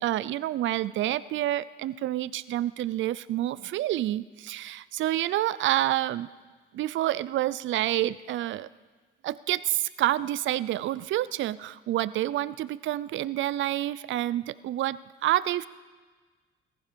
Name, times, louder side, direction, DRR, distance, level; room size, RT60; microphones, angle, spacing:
voice 1, 0.0-6.3 6.7-8.7 9.2-15.7, right 14 dB, 75° right, 17 dB, 0.5 m, -28 dB
18.0 x 15.0 x 5.2 m, 1.4 s
cardioid pair, 90°, 20 cm